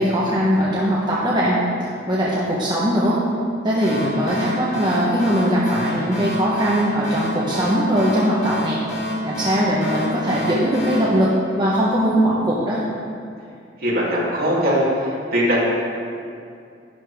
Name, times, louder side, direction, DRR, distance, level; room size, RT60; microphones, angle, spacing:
voice 1, 0.0-3.2 3.6-8.8 9.2-12.8, equal, 25° right, -7 dB, 1.2 m, -20 dB
sound 1, 3.8-12.1, equal, 40° left, 2.0 m, -28 dB
voice 2, 13.8-14.8 15.3-15.6, equal, 55° right, -7 dB, 3.1 m, -20 dB
11.5 x 11.0 x 3.6 m, 2.4 s
head